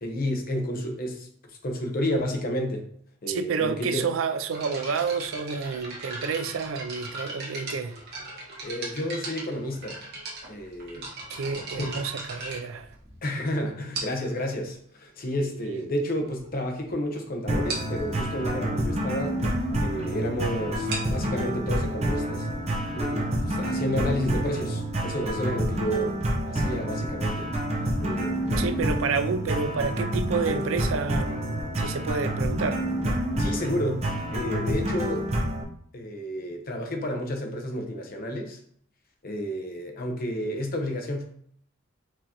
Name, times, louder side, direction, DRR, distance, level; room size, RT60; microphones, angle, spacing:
voice 1, 0.0-1.3 1.6-2.9 3.2-4.1 8.6-10.0 10.5-11.1 13.2-19.4 19.8-22.5 22.9-26.2 26.5-27.5 28.0-29.1 33.4-34.0 34.3-35.2 35.9-38.6 39.2-41.2, equal, 45° left, 0.8 m, -31 dB
voice 2, 3.3-8.0 11.3-12.9 15.4-15.8 28.6-32.8, right 5 dB, 80° right, 0.4 m, -29 dB
sound 1, 4.5-13.3 13.9-14.4 15.2-15.3 15.9-16.0 16.3-16.5 16.8-16.9 17.2-17.3 17.7-18.0 20.7-24.1, right 2 dB, 55° right, 1.3 m, -38 dB
sound 2, 17.5-35.6, right 1 dB, 35° right, 0.8 m, -28 dB
4.7 x 3.8 x 2.9 m
head